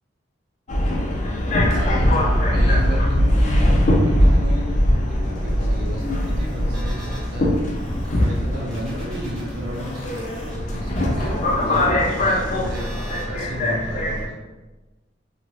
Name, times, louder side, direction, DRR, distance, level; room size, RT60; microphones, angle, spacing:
Subway metro underground, 0.7-14.3, left 1 dB, 40° left, 0.4 m, -21 dB
voice 1, 1.7-7.8 8.2-14.3, equal, 55° right, -4 dB, 0.6 m, -33 dB
sound 1, 5.2-7.3 7.7-13.2, equal, 5° left, 0.9 m, -40 dB
2.8 x 2.4 x 3.0 m, 1.1 s
head